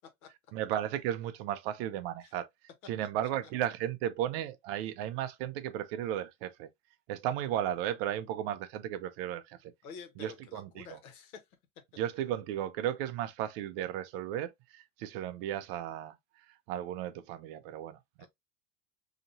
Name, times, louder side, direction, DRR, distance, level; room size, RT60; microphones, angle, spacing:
voice 1, 0.5-2.5 2.9-6.7 7.1-9.7 10.2-11.0 12.0-16.2 16.7-18.3, right 11 dB, 45° right, 0.5 m, -35 dB
voice 2, 9.8-11.4 18.2-18.3, left 6 dB, 80° left, 1.4 m, -48 dB
4.1 x 2.8 x 2.6 m
supercardioid pair, 155°, 42 cm